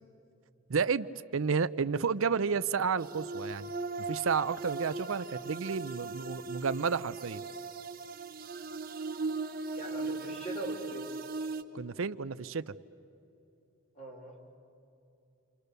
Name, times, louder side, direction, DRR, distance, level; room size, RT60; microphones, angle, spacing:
voice 1, 0.7-1.1 1.3-3.7 4.1-7.4 11.7-12.7, right 5 dB, 75° right, 13 dB, 0.6 m, -31 dB
sound 1, 3.0-11.6, right 3 dB, 45° right, 1.1 m, -38 dB
voice 2, 9.7-11.1 13.9-14.4, right 2 dB, 30° left, -1 dB, 4.3 m, -41 dB
29.0 x 27.5 x 6.8 m, 2.8 s
head